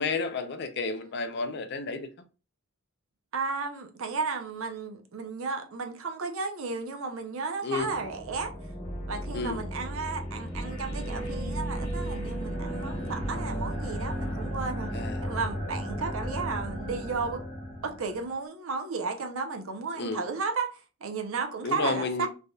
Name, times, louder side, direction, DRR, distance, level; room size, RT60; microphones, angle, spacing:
voice 1, 0.0-2.1 7.6-7.9 9.3-9.6 14.9-15.2 20.0-20.2 21.6-22.3, left 4 dB, 50° left, 0.4 m, -31 dB
voice 2, 3.3-8.5 9.1-14.9 15.2-17.4 17.8-22.3, right 4 dB, 65° right, 0.6 m, -33 dB
sound 1, 7.8-18.3, equal, 30° left, 1.7 m, -34 dB
3.3 x 2.7 x 2.2 m
head